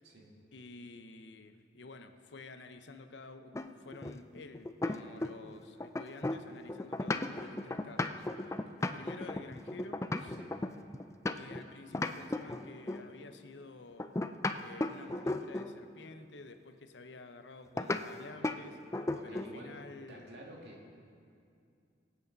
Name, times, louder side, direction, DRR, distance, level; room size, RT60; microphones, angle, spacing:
voice 1, 0.5-10.4 11.3-14.2 14.6-20.4, left 3 dB, 90° left, 8 dB, 0.8 m, -51 dB
sound 1, 3.5-5.5 5.8-11.6 11.9-13.1 14.0-15.8 17.8-18.0 18.4-18.6 18.9-19.6, left 2 dB, 15° left, 0.4 m, -35 dB
voice 2, 19.1-19.8 20.1-21.0, right 1 dB, 75° right, -2 dB, 2.2 m, -50 dB
23.0 x 8.4 x 4.0 m, 2.4 s
head